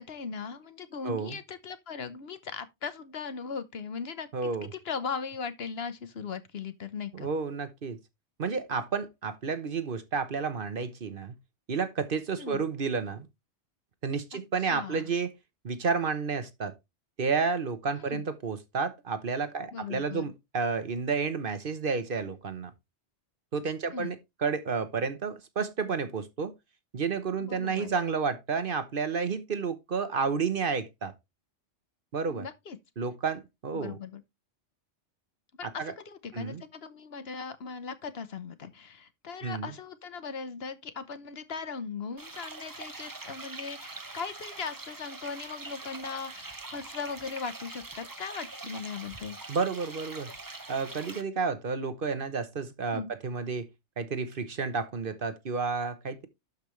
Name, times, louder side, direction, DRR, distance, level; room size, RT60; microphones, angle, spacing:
voice 1, 0.0-4.3 4.7-7.3 12.4-12.6 14.3-15.1 18.0-18.2 19.7-20.3 23.9-24.1 27.4-27.9 32.3-32.8 33.7-34.2 35.6-49.4 52.9-53.1, left 5 dB, 60° left, 1.2 m, -38 dB
voice 2, 1.0-1.4 4.3-4.7 7.1-8.0 8.4-11.3 11.7-13.3 14.0-15.3 15.6-16.7 17.2-22.7 23.5-24.2 24.4-26.5 26.9-31.1 32.1-32.5 33.0-34.0 35.8-35.9 36.3-36.6 39.4-39.7 49.5-50.3 50.7-53.7 54.0-56.3, right 5 dB, 50° right, 1.1 m, -31 dB
sound 1, 42.2-51.2, right 3 dB, 20° right, 0.7 m, -43 dB
12.0 x 5.4 x 3.1 m
omnidirectional pair, 1.2 m